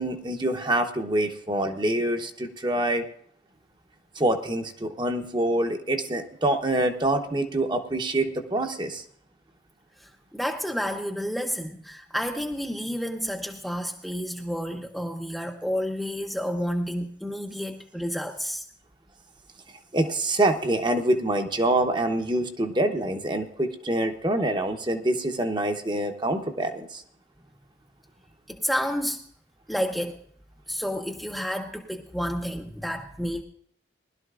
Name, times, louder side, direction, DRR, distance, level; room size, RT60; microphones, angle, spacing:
voice 1, 0.0-3.0 4.2-9.0 19.9-27.0, right 1 dB, 25° right, 5 dB, 0.9 m, -26 dB
voice 2, 10.0-18.6 28.5-29.2 29.7-30.2 30.7-33.4, equal, ahead, 1 dB, 0.7 m, -30 dB
20.0 x 12.0 x 2.5 m, 0.66 s
head